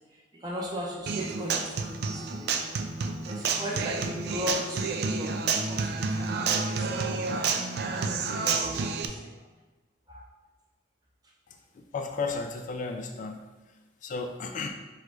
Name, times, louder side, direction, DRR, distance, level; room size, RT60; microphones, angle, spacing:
voice 1, 0.1-3.0 3.2-9.5 10.1-10.3, left 1 dB, 20° right, -3 dB, 0.9 m, -38 dB
Human voice / Acoustic guitar, 1.1-9.0, right 4 dB, 60° right, 0.4 m, -29 dB
voice 2, 11.8-13.4 14.0-14.7, left 4 dB, 45° left, 5 dB, 0.3 m, -33 dB
4.7 x 2.4 x 4.7 m, 1.2 s
head